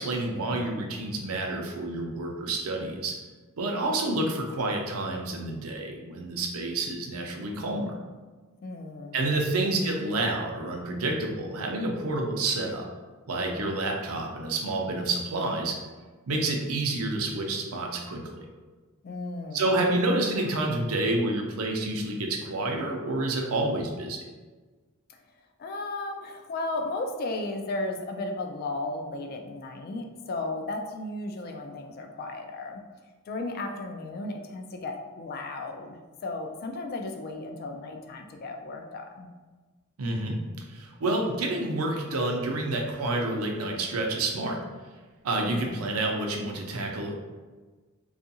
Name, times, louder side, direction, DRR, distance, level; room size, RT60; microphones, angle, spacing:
voice 1, 0.0-3.2 3.6-8.0 9.1-12.9 13.3-15.8 16.3-18.5 19.5-24.2 40.0-40.4 40.7-44.6 45.2-47.1, right 2 dB, 85° right, 1 dB, 0.5 m, -29 dB
voice 2, 8.6-10.2 19.0-19.8 25.1-25.2 25.6-32.8 33.3-39.3 45.4-45.9, left 2 dB, 45° left, 4 dB, 0.3 m, -35 dB
2.6 x 2.4 x 2.7 m, 1.3 s
head